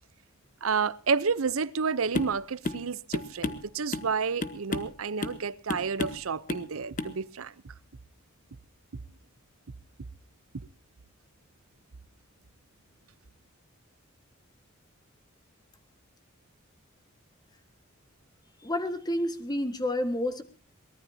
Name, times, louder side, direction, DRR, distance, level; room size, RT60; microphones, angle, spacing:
voice 1, 0.6-7.7, right 5 dB, 85° right, 0.7 m, -30 dB
sound 1, 2.1-2.4 2.6-2.8 3.1-4.1 4.4-4.9 5.2-5.4 5.7-6.2 6.5-6.7 7.0-7.1, left 2 dB, 40° left, 1.2 m, -32 dB
voice 2, 18.6-20.4, left 1 dB, 20° left, 1.6 m, -29 dB
23.0 x 18.5 x 2.8 m
head